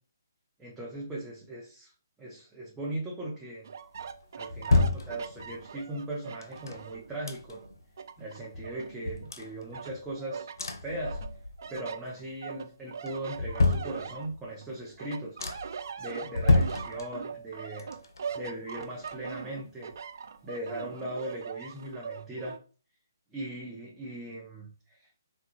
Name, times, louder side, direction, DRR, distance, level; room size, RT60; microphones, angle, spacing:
voice 1, 0.6-1.9 2.2-3.6 4.4-7.6 8.2-10.5 10.8-11.2 11.7-15.4 16.0-17.9 18.3-19.9 20.4-22.6 23.3-25.1, right 1 dB, 10° right, -5 dB, 0.7 m, -39 dB
sound 1, 3.6-7.1 7.5-9.3 9.7-10.6 11.0-14.7 15.0-22.6, right 6 dB, 60° right, 0.3 m, -41 dB
sound 2, 3.9-5.7 6.4-7.8 8.2-8.3 8.5-10.2 10.6-11.8 12.1-12.6 13.0-14.5 14.9-15.0 15.4-15.9 16.3-17.5 17.8-19.6 19.9-20.0, left 2 dB, 75° left, 0.6 m, -30 dB
3.5 x 2.2 x 3.0 m, 0.37 s
hypercardioid pair, 150°, 2 cm